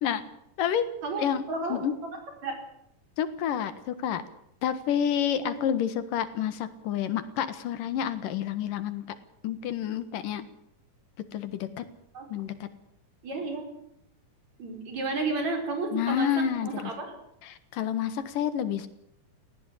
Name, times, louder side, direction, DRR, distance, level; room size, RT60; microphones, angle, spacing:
voice 1, 1.0-2.1 2.4-2.6 5.4-5.5 12.1-12.3 13.2-13.8 14.6-17.1, right 3 dB, 55° right, 4 dB, 6.1 m, -32 dB
voice 2, 3.2-4.2 4.6-9.1 9.4-10.5 11.3-11.8 12.3-12.7 15.9-16.9 17.4-18.9, left 9 dB, 90° left, 12 dB, 3.2 m, -29 dB
19.0 x 17.5 x 8.6 m, 0.75 s
omnidirectional pair, 3.7 m